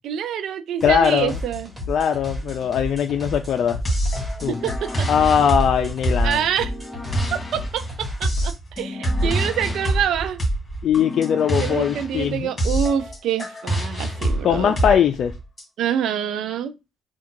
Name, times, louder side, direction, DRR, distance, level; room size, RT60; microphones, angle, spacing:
voice 1, 0.0-1.7 4.5-5.1 6.2-6.7 7.3-10.4 11.6-14.7 15.8-16.7, right 9 dB, 80° right, 0.4 m, -26 dB
voice 2, 0.8-1.4 1.9-3.8 4.4-4.6 5.1-6.4 10.8-12.5 14.4-15.3, left 8 dB, 65° left, 0.4 m, -20 dB
sound 1, 0.8-8.5, left 1 dB, 20° right, 1.7 m, -33 dB
sound 2, 3.9-15.6, right 1 dB, 30° left, 2.0 m, -26 dB
3.6 x 2.3 x 4.5 m
cardioid pair, 90°, 0 cm